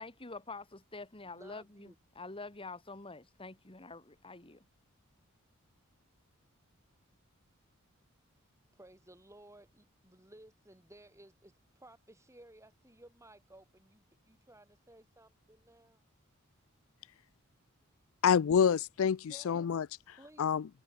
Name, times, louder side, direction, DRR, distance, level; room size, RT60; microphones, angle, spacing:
voice 1, 0.0-1.9 2.2-4.6, left 3 dB, 25° left, 2.1 m, -46 dB
voice 2, 1.2-2.0 8.7-16.1 19.3-19.7 20.2-20.7, right 1 dB, 15° right, 5.7 m, -58 dB
voice 3, 18.2-20.6, left 7 dB, 65° left, 0.4 m, -28 dB
head